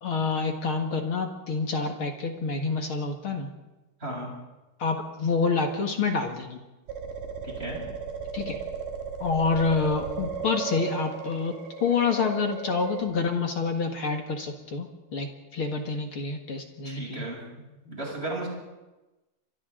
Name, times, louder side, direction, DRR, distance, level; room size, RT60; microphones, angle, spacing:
voice 1, 0.0-3.5 4.8-6.6 8.3-8.6 9.2-17.2, left 4 dB, 50° left, 4 dB, 1.7 m, -28 dB
sound 1, 6.9-13.0, right 6 dB, 85° right, 4.3 m, -35 dB
voice 2, 7.4-7.8 16.8-17.4 17.8-18.5, right 2 dB, 15° right, -3 dB, 7.9 m, -34 dB
30.0 x 26.0 x 3.9 m, 1.0 s
omnidirectional pair, 4.8 m